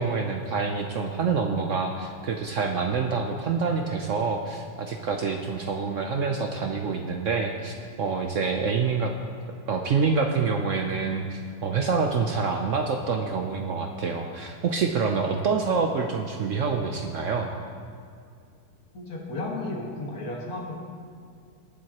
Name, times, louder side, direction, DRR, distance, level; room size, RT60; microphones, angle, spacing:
voice 1, 0.0-9.1 9.7-17.5, right 5 dB, 70° right, 3 dB, 0.7 m, -27 dB
voice 2, 18.9-20.8, left 2 dB, 50° left, -2 dB, 2.1 m, -33 dB
20.0 x 7.7 x 2.9 m, 2.2 s
omnidirectional pair, 2.0 m